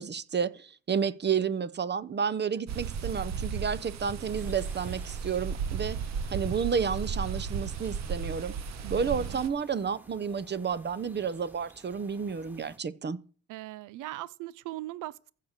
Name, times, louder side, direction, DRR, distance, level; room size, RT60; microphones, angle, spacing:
voice 1, 0.0-6.0 6.3-8.5 8.9-13.2, right 6 dB, 35° right, 0.9 m, -31 dB
sound 1, 2.7-9.5, right 6 dB, 60° right, 1.2 m, -35 dB
sound 2, 4.3-12.8, equal, 5° right, 1.9 m, -55 dB
voice 2, 8.8-9.4 13.5-15.3, right 16 dB, 90° right, 0.6 m, -40 dB
14.5 x 6.6 x 6.7 m
cardioid pair, 90°, 30 cm